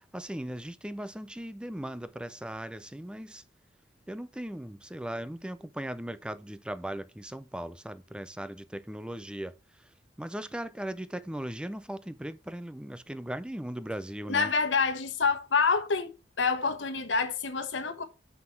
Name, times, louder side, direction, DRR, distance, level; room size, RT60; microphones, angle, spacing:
voice 1, 0.0-3.4 4.1-9.5 10.2-14.5, right 1 dB, 5° right, 0.4 m, -38 dB
voice 2, 14.3-16.1 16.4-18.0, left 4 dB, 80° left, 1.2 m, -27 dB
5.8 x 5.8 x 4.6 m
head